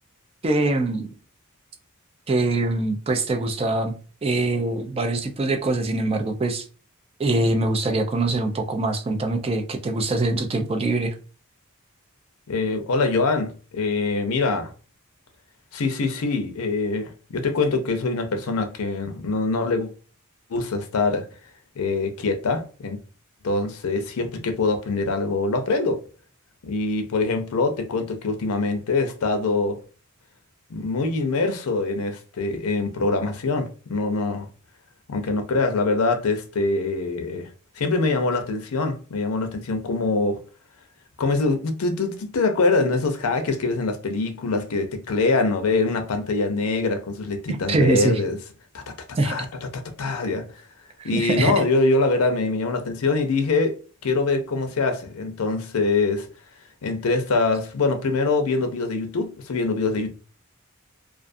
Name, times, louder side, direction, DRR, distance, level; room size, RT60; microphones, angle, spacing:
voice 1, 0.4-1.2 2.3-3.9 4.2-6.6 7.2-11.1 47.7-48.2 49.2-49.3 51.0-51.5, right 2 dB, 25° right, 0.4 m, -23 dB
voice 2, 12.5-14.7 15.7-19.9 20.5-21.3 21.8-23.0 23.4-26.0 26.7-29.8 30.7-34.5 35.1-37.5 37.8-40.4 41.2-48.4 48.7-48.9 49.2-49.5 49.7-50.4 51.0-53.7 54.0-56.3 56.8-60.1, left 3 dB, 80° left, 0.5 m, -24 dB
2.4 x 2.4 x 2.5 m
head